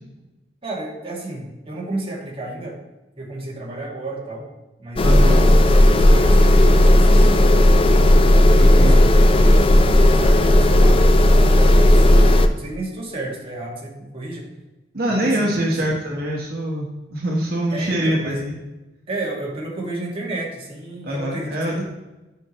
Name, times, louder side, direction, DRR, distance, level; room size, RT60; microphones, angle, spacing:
voice 1, 0.6-2.8 3.2-4.5 4.8-7.7 8.5-14.5 15.1-15.9 17.7-18.4 19.1-21.8, right 2 dB, 30° right, -3 dB, 2.0 m, -32 dB
sound 1, 5.0-12.5, left 1 dB, 30° left, 0.5 m, -13 dB
voice 2, 5.0-5.5 8.4-9.0 14.9-18.5 21.0-21.8, right 1 dB, 60° right, -3 dB, 1.4 m, -24 dB
10.5 x 5.8 x 3.2 m, 1.1 s
head